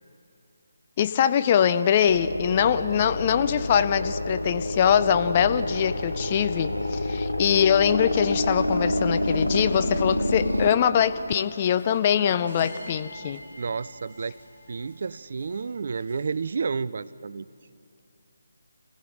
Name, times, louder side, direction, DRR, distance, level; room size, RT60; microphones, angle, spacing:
voice 1, 1.0-13.4, left 8 dB, 30° left, 11 dB, 0.6 m, -23 dB
sound 1, 2.1-10.7, left 1 dB, 90° left, 1.5 m, -27 dB
sound 2, 11.3-16.6, left 1 dB, 60° left, 5.3 m, -48 dB
voice 2, 13.6-14.4 14.7-17.5, right 5 dB, 50° right, 18 dB, 0.4 m, -31 dB
27.0 x 16.5 x 6.1 m, 2.5 s
figure-of-eight pair, 150°, 0 cm